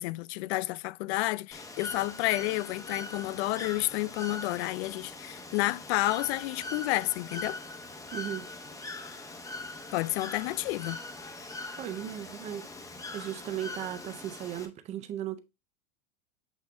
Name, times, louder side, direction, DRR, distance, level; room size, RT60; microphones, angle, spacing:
voice 1, 0.0-7.6 9.9-11.0, left 18 dB, 55° left, 0.4 m, -30 dB
Bird / Water, 1.5-14.7, left 2 dB, 10° left, 0.8 m, -42 dB
voice 2, 8.1-8.5 11.8-12.7 13.1-15.4, right 11 dB, 20° right, 0.4 m, -36 dB
8.2 x 3.4 x 3.3 m
supercardioid pair, 150°, 38 cm